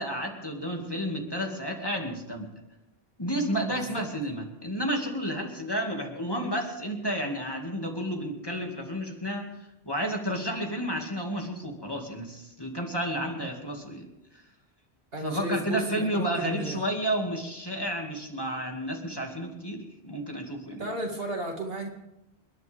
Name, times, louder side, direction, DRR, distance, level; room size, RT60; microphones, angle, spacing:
voice 1, 0.0-2.5 3.2-9.5 9.9-14.1 15.2-20.9, equal, 20° left, 1 dB, 2.3 m, -31 dB
voice 2, 3.7-4.0 15.1-16.8 20.8-21.9, right 2 dB, 65° right, 1 dB, 2.4 m, -33 dB
29.0 x 10.5 x 3.6 m, 0.91 s
omnidirectional pair, 1.1 m